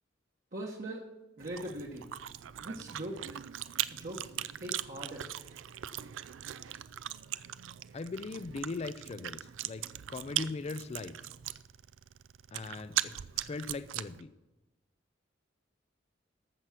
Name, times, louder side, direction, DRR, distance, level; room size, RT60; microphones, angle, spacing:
voice 1, 0.5-1.0 1.4-2.1 2.6-3.2 3.9-5.4, right 1 dB, 45° right, -2 dB, 1.1 m, -41 dB
Chewing mastication, 1.4-14.2, right 12 dB, 85° right, 0.4 m, -40 dB
voice 2, 7.9-11.1 12.5-14.3, left 3 dB, 35° left, 13 dB, 0.4 m, -40 dB
14.5 x 6.1 x 5.8 m, 1.0 s
head